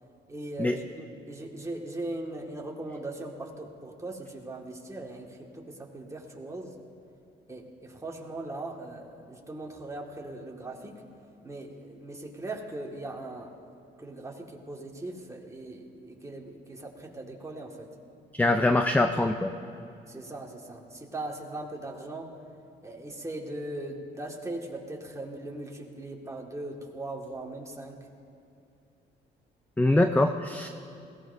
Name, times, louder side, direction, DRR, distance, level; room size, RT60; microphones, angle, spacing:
voice 1, 0.3-6.7 7.5-11.0 11.4-13.5 14.0-17.9 20.1-22.3 22.8-28.0, right 2 dB, 15° right, 0 dB, 1.9 m, -39 dB
voice 2, 18.3-19.5 29.8-30.7, left 2 dB, 10° left, 7 dB, 0.5 m, -23 dB
21.0 x 17.5 x 2.7 m, 2.7 s
cardioid pair, 90°, 20 cm